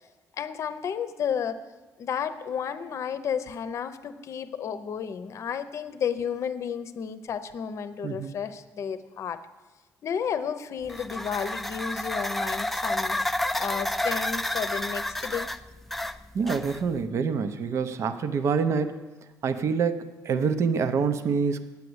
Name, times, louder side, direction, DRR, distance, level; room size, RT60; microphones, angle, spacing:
voice 1, 0.3-1.6 2.0-9.4 10.0-13.2 13.6-15.5, left 7 dB, 50° left, 12 dB, 0.7 m, -32 dB
voice 2, 8.0-8.4 16.3-19.0 19.4-21.6, right 5 dB, 50° right, 10 dB, 0.7 m, -26 dB
sound 1, 10.9-17.0, left 1 dB, 5° left, 0.3 m, -30 dB
9.9 x 8.3 x 8.0 m, 1.2 s
cardioid pair, 140°, 6 cm